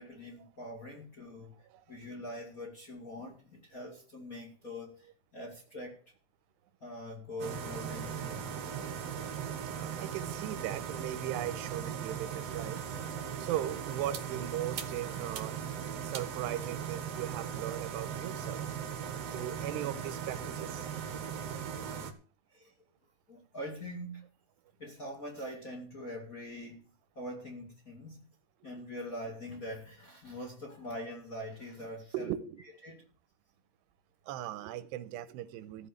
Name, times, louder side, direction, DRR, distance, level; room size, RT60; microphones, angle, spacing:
voice 1, 0.0-1.5 1.9-6.0 6.8-8.5 22.5-22.7 23.3-24.2 24.8-26.9 27.2-28.2 28.6-32.3 32.8-33.1, left 1 dB, 30° left, 1.9 m, -43 dB
sound 1, 7.4-22.1, right 8 dB, 60° right, 1.7 m, -38 dB
voice 2, 9.8-12.8 13.4-15.6 16.0-18.6 19.3-20.9 28.6-28.7 32.1-32.7 34.3-35.9, right 12 dB, 90° right, 3.0 m, -38 dB
14.5 x 5.6 x 8.5 m
omnidirectional pair, 4.8 m